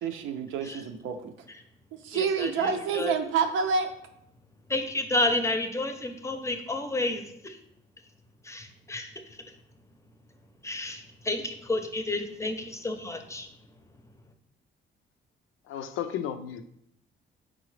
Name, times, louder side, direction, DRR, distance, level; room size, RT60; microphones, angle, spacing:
voice 1, 0.0-1.3 1.9-3.9, right 5 dB, 85° right, 6 dB, 0.5 m, -28 dB
voice 2, 2.1-3.1 4.7-7.6 8.4-9.4 10.6-13.5, left 2 dB, 15° left, 6 dB, 0.5 m, -31 dB
voice 3, 15.7-16.6, left 9 dB, 85° left, 9 dB, 0.4 m, -33 dB
3.9 x 3.7 x 3.2 m, 0.72 s
cardioid pair, 90°, 20 cm